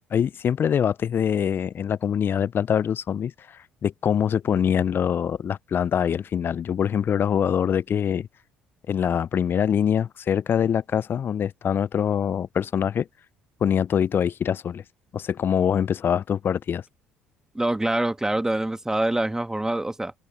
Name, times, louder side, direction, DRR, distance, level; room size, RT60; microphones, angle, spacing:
voice 1, 0.1-8.3 8.9-13.1 13.6-14.8 15.1-16.8, left 8 dB, 45° left, 0.6 m, -24 dB
voice 2, 17.6-20.1, right 1 dB, 10° right, 1.8 m, -25 dB
hypercardioid pair, 55°, 5 cm